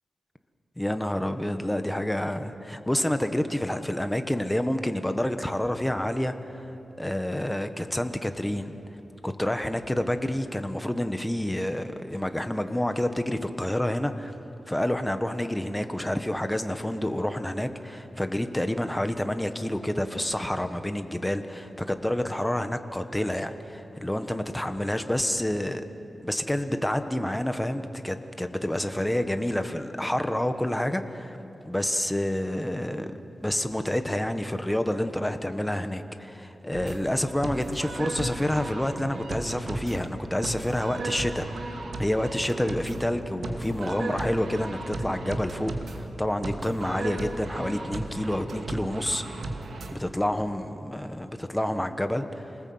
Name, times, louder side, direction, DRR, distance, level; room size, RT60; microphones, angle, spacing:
voice 1, 0.8-6.3 7.0-8.8 9.2-14.3 14.7-25.8 26.2-31.4 31.7-33.1 33.4-41.7 42.0-49.2 49.9-52.5, left 1 dB, 10° left, 8 dB, 1.3 m, -28 dB
sound 1, 36.7-49.9, right 2 dB, 75° right, 2.3 m, -35 dB
27.5 x 19.5 x 7.9 m, 2.9 s
wide cardioid pair, 105°, 0 cm